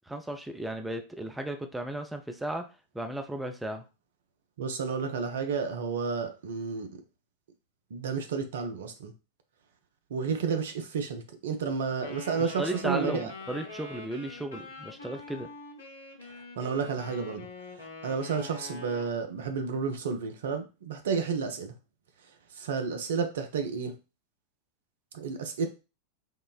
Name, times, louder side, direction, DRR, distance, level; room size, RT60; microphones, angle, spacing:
voice 1, 0.1-2.6 2.9-3.8 12.4-15.5, right 1 dB, 5° right, 0.4 m, -35 dB
voice 2, 4.6-6.9 7.9-9.1 10.1-13.3 16.6-17.5 17.8-21.7 22.5-24.0 25.1-25.7, right 5 dB, 60° right, 0.5 m, -31 dB
Wind instrument woodwind instrument, 12.0-19.1, left 3 dB, 70° left, 0.8 m, -44 dB
3.7 x 2.0 x 2.3 m
figure-of-eight pair, 90°, 0 cm